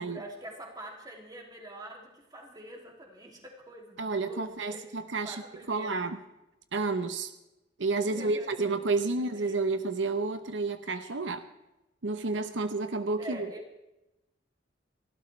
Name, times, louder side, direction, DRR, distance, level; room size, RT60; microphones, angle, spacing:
voice 1, 0.0-5.0 5.2-6.0 8.0-8.7 9.2-9.6 13.2-13.6, right 1 dB, 20° right, 1 dB, 2.8 m, -45 dB
voice 2, 4.0-5.4 5.7-6.2 6.7-7.3 7.8-11.4 12.0-13.5, right 3 dB, 90° right, 9 dB, 0.9 m, -30 dB
30.0 x 12.5 x 3.3 m, 0.95 s
head